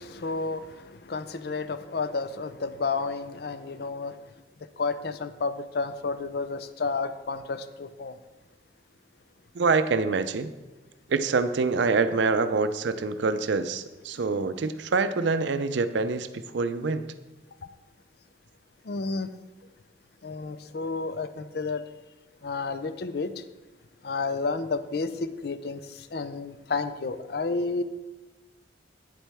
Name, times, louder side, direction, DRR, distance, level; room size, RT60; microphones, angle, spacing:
voice 1, 0.0-4.2 4.8-8.2 18.9-19.3 20.2-21.8 22.4-23.3 24.0-27.8, left 4 dB, 55° left, 12 dB, 0.5 m, -31 dB
voice 2, 9.6-10.5 11.1-16.3 16.5-17.0, right 4 dB, 70° right, 11 dB, 0.5 m, -25 dB
9.2 x 7.2 x 3.5 m, 1.1 s
head